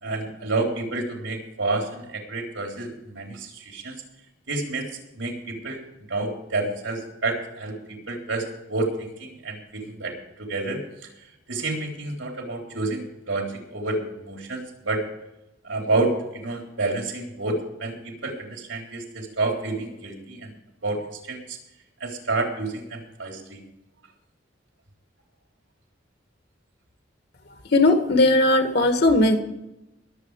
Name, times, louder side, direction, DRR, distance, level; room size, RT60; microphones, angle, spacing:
voice 1, 0.0-4.0 4.5-4.9 5.1-10.8 11.5-15.0 15.6-20.5 20.8-21.6 22.0-23.6, right 2 dB, 80° right, 2 dB, 3.7 m, -29 dB
voice 2, 27.5-29.4, left 2 dB, 55° left, 6 dB, 1.9 m, -18 dB
21.0 x 7.8 x 4.8 m, 0.91 s
head